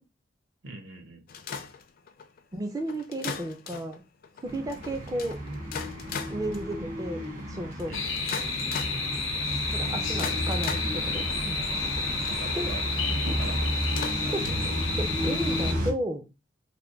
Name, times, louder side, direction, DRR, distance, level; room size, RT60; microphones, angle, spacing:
voice 1, 0.6-1.2 7.9-8.1 8.9-9.1 10.2-10.4 12.3-12.8 13.4-14.4, right 3 dB, 70° right, 3 dB, 0.8 m, -43 dB
sound 1, 1.3-15.3, left 6 dB, 50° left, 0.4 m, -40 dB
voice 2, 2.5-4.0 4.4-5.4 6.3-8.0 9.7-11.7 12.5-12.7 14.3-16.2, right 1 dB, 20° right, 5 dB, 0.4 m, -34 dB
sound 2, 4.4-15.9, equal, 50° right, 1.2 m, -32 dB
sound 3, 7.9-15.7, left 4 dB, 85° left, 0.8 m, -31 dB
3.4 x 2.2 x 3.7 m, 0.27 s
head